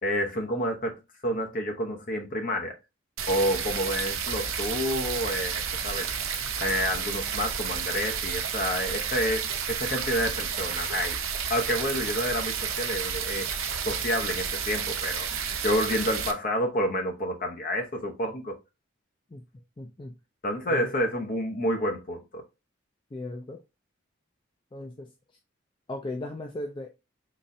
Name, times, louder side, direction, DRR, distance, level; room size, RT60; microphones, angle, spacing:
voice 1, 0.0-2.7 3.3-6.1 6.6-9.4 9.7-11.2 11.5-13.5 13.8-18.6 20.4-22.4, equal, 40° left, 0.8 m, -29 dB
sound 1, 3.2-16.3, right 7 dB, 90° right, 0.7 m, -31 dB
voice 2, 19.8-20.1 20.7-20.9 23.1-23.6 24.7-25.1 25.9-26.9, left 1 dB, 25° left, 0.3 m, -37 dB
4.0 x 3.1 x 2.6 m
head